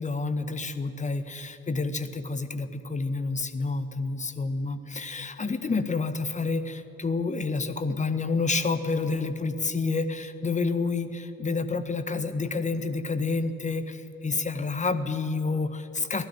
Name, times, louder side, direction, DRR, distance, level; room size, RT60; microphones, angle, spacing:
voice 1, 0.0-16.3, left 3 dB, 20° left, 11 dB, 1.6 m, -29 dB
24.0 x 16.0 x 9.4 m, 2.8 s
figure-of-eight pair, 55°, 40 cm